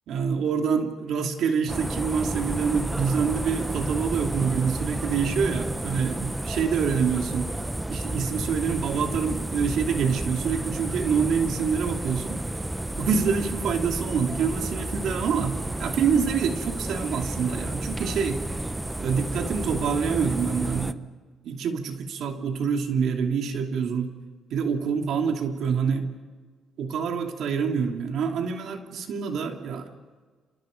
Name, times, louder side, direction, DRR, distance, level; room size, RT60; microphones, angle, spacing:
voice 1, 0.1-7.5 7.9-12.4 13.0-18.4 19.0-21.0 21.4-24.1 24.5-26.1 26.8-29.9, right 6 dB, 75° right, 4 dB, 2.8 m, -26 dB
sound 1, 1.7-20.9, right 1 dB, 10° right, 1.0 m, -31 dB
29.0 x 28.5 x 5.2 m, 1.5 s
cardioid pair, 90°, 0 cm